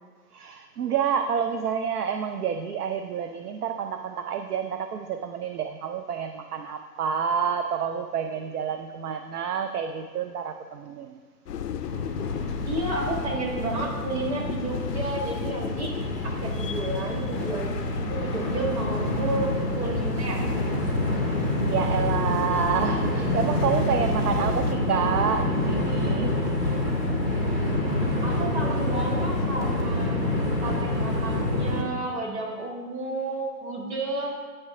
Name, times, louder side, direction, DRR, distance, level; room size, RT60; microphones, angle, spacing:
voice 1, 0.3-11.2 21.7-26.3, right 7 dB, 65° right, 7 dB, 0.5 m, -28 dB
sound 1, 11.5-24.7, left 8 dB, 70° left, 0.5 m, -37 dB
Train, 11.9-31.8, left 1 dB, 15° right, 0.6 m, -27 dB
voice 2, 12.7-15.9 16.2-20.4 28.2-30.2 30.6-34.3, right 2 dB, 40° right, -2 dB, 1.7 m, -31 dB
8.7 x 3.3 x 5.7 m, 1.5 s
hypercardioid pair, 145°, 50 cm